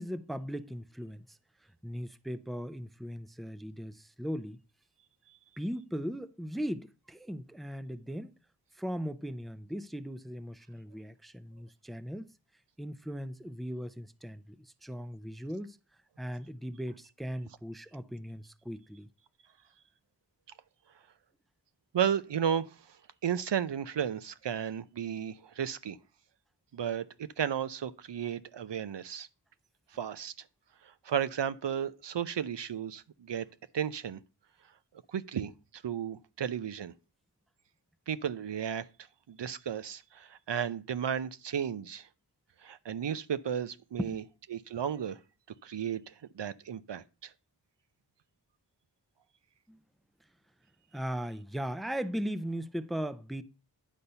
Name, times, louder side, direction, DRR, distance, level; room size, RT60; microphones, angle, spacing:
voice 1, 0.0-1.4 1.8-4.6 5.6-8.4 8.7-12.3 12.8-15.8 16.2-19.1 44.0-44.2 49.7-49.8 50.9-53.4, equal, ahead, 0.5 m, -38 dB
voice 2, 21.9-22.7 23.2-26.0 26.7-29.3 29.9-30.3 31.0-33.5 33.7-34.2 35.1-36.9 38.1-38.9 39.3-42.1 42.6-44.2 44.5-45.2 45.6-47.3, right 8 dB, 80° right, 0.6 m, -34 dB
10.0 x 4.2 x 6.7 m
wide cardioid pair, 60°, 42 cm